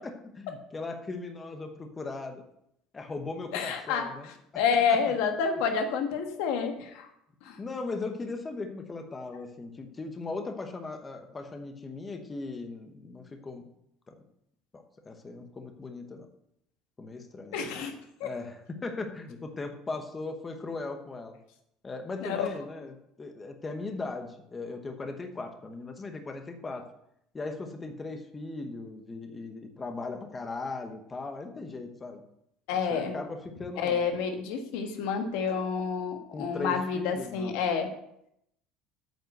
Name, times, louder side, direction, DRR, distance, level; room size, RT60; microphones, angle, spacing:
voice 1, 0.4-2.4 2.9-4.6 4.9-5.1 7.6-13.7 14.1-14.2 14.7-16.3 17.0-17.6 18.2-21.4 21.8-26.9 27.3-32.2 32.7-34.0 36.3-37.6, left 3 dB, 20° left, 5 dB, 1.0 m, -38 dB
voice 2, 3.5-4.0 4.5-7.1 7.4-7.6 17.5-17.9 18.2-18.3 22.2-22.5 32.7-33.1 33.8-37.9, left 6 dB, 80° left, 5 dB, 1.5 m, -29 dB
8.9 x 5.5 x 8.0 m, 0.77 s
cardioid pair, 150°, 0 cm